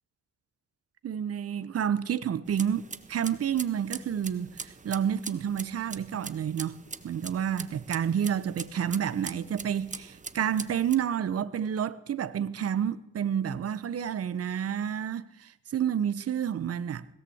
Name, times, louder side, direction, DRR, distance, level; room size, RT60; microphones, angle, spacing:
voice 1, 1.0-2.8 3.1-6.8 7.0-17.1, right 9 dB, 50° right, 1.2 m, -29 dB
sound 1, 2.5-11.0, right 4 dB, 25° right, 1.4 m, -43 dB
20.5 x 17.5 x 8.0 m
cardioid pair, 90°, 30 cm